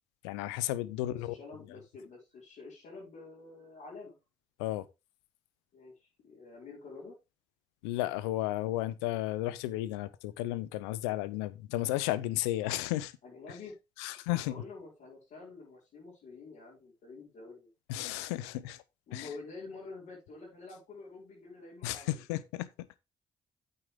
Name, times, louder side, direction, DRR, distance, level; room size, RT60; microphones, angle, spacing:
voice 1, 0.2-1.3 4.6-4.9 7.8-13.1 14.0-14.6 17.9-18.8 19.1-19.3 21.8-22.9, left 15 dB, 90° left, 0.6 m, -33 dB
voice 2, 1.0-4.1 5.7-7.2 13.2-13.7 14.3-17.7 19.1-22.2, left 3 dB, 70° left, 5.6 m, -48 dB
8.9 x 7.9 x 3.7 m
hypercardioid pair, 45°, 14 cm